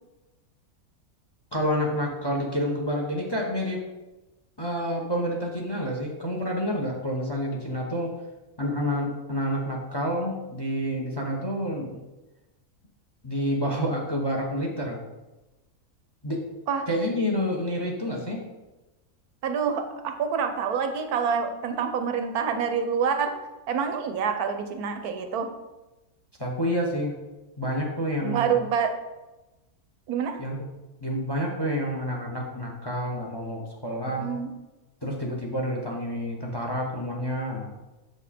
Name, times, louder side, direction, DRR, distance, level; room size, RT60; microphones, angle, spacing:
voice 1, 1.5-3.8 4.6-8.1 8.6-12.0 13.2-15.0 16.2-16.4 16.9-18.4 26.4-27.1 27.6-28.6 30.4-30.5 31.0-34.3 35.0-37.7, equal, 20° left, 1 dB, 0.8 m, -28 dB
voice 2, 19.4-23.3 23.7-25.5 28.2-28.9 30.1-30.4 34.2-34.5, right 6 dB, 90° right, 6 dB, 1.3 m, -27 dB
7.0 x 5.1 x 4.2 m, 1.1 s
omnidirectional pair, 1.6 m